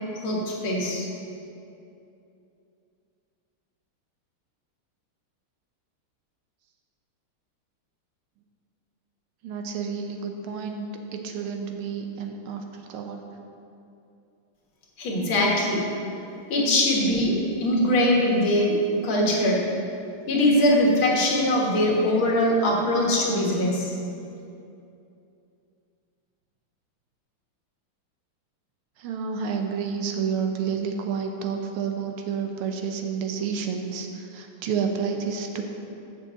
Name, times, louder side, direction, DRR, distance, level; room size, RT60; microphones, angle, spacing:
voice 1, 0.2-1.1 15.0-15.8 16.5-19.6 20.3-24.0, left 1 dB, 70° left, -3 dB, 2.3 m, -22 dB
voice 2, 9.4-10.9 11.1-13.2 29.0-35.6, right 6 dB, 80° right, 4 dB, 1.7 m, -30 dB
6.7 x 6.5 x 7.5 m, 2.6 s
omnidirectional pair, 2.4 m